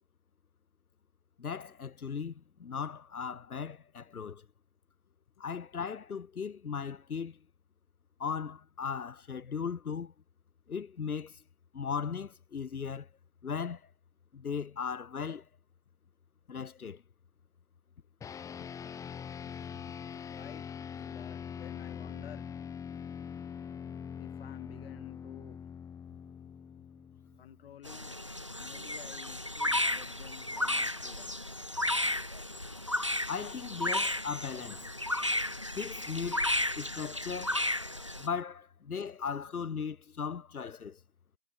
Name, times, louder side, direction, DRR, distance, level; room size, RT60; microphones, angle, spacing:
voice 1, 1.4-2.3 2.6-4.4 5.4-7.4 8.2-10.1 10.7-11.3 11.7-13.1 13.4-13.8 14.3-15.4 16.5-17.0 33.3-34.9 35.8-36.5 36.8-37.6 38.2-41.0, left 6 dB, 75° left, 2.1 m, -37 dB
sound 1, 18.2-27.8, left 7 dB, 5° left, 2.4 m, -43 dB
voice 2, 20.3-22.5 24.2-25.6 27.4-28.2 28.5-31.4, left 10 dB, 40° left, 5.2 m, -52 dB
sound 2, 27.8-38.3, left 1 dB, 25° right, 0.4 m, -33 dB
hypercardioid pair, 155°, 44 cm